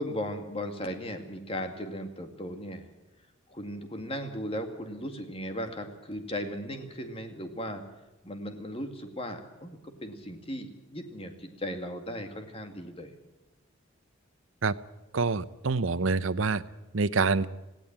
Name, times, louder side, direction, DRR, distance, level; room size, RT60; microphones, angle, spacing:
voice 1, 0.0-2.9 3.5-7.8 8.2-13.1, equal, 30° left, 6 dB, 2.1 m, -37 dB
voice 2, 15.1-16.6 16.9-17.5, right 4 dB, 70° right, 16 dB, 0.8 m, -26 dB
18.5 x 16.5 x 8.8 m, 1.0 s
head